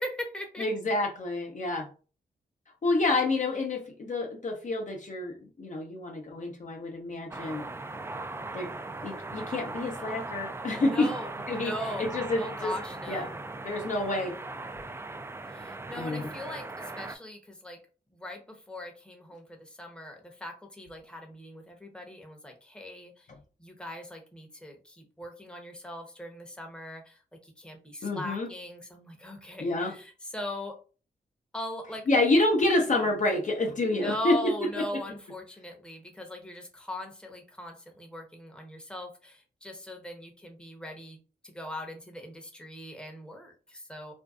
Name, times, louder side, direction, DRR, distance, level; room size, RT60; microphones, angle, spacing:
voice 1, 0.0-0.6 10.9-12.1 12.4-13.4 15.5-17.8 18.1-23.3 23.6-30.8 31.5-32.1 33.0-33.1 33.9-41.2 41.4-44.1, left 1 dB, 5° left, 2 dB, 0.8 m, -40 dB
voice 2, 0.6-1.9 2.8-7.6 8.5-8.7 9.0-11.1 11.5-11.7 12.0-12.7 13.1-13.3 13.6-14.4 16.0-16.3 28.0-28.5 29.6-29.9 32.1-35.0, left 2 dB, 45° left, 2 dB, 0.6 m, -28 dB
sound 1, 7.3-17.2, right 2 dB, 15° right, 0.3 m, -39 dB
2.5 x 2.2 x 2.3 m, 0.36 s
supercardioid pair, 50°, 18 cm